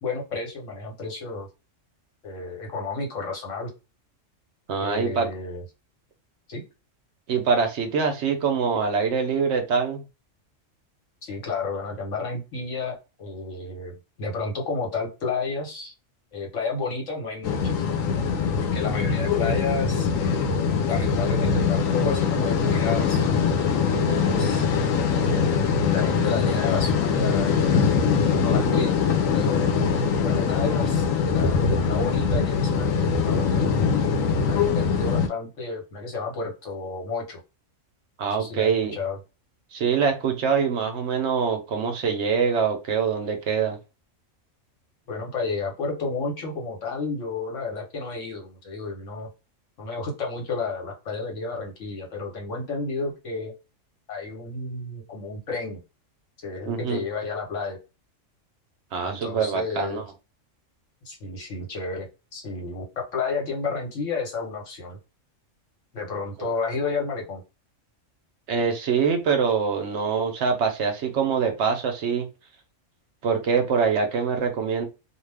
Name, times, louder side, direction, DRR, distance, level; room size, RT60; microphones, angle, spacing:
voice 1, 0.0-1.5 2.2-3.7 4.8-5.6 6.5-6.6 11.2-15.9 16.3-17.9 18.6-23.3 24.0-24.7 25.0-25.5 25.8-27.6 28.3-29.0 29.3-33.7 34.4-37.4 38.4-39.2 45.1-49.3 49.8-53.5 54.1-55.8 56.4-57.8 59.0-60.0 61.0-62.8 63.1-65.0 65.9-67.4, left 4 dB, 70° left, 0 dB, 1.3 m, -31 dB
voice 2, 4.7-5.3 7.3-10.0 23.9-24.7 38.2-39.0 39.7-43.8 56.7-57.0 58.9-60.0 68.5-72.3 73.2-74.9, right 6 dB, 65° right, 5 dB, 0.8 m, -24 dB
sound 1, 17.4-35.3, left 5 dB, 90° left, 1.0 m, -22 dB
2.5 x 2.3 x 3.3 m, 0.28 s
omnidirectional pair, 1.3 m